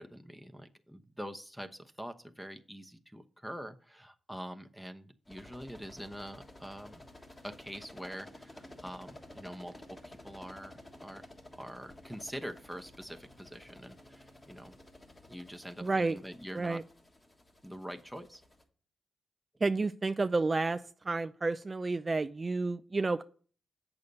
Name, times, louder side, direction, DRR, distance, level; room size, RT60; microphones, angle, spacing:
voice 1, 0.0-7.0 7.4-11.2 11.5-14.7 15.3-16.8 17.6-18.4, equal, ahead, 0.9 m, -45 dB
sound 1, 5.3-18.6, left 1 dB, 25° left, 1.6 m, -53 dB
voice 2, 15.8-16.2 16.5-16.8 19.6-20.8 21.1-23.2, right 3 dB, 35° right, 0.3 m, -30 dB
8.1 x 6.8 x 4.0 m
cardioid pair, 65°, 0 cm